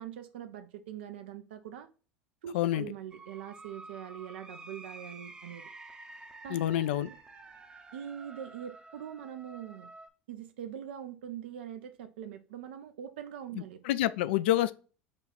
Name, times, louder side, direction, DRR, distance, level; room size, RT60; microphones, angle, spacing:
voice 1, 0.0-1.9 2.4-5.7 6.4-6.6 7.9-9.9 10.3-13.8, right 9 dB, 70° right, 0.5 m, -43 dB
voice 2, 2.5-2.9 6.5-7.1 13.5-14.7, left 13 dB, 70° left, 0.4 m, -28 dB
sound 1, 3.1-10.1, right 3 dB, 15° right, 0.6 m, -50 dB
5.1 x 2.3 x 4.2 m
hypercardioid pair, 75°, 6 cm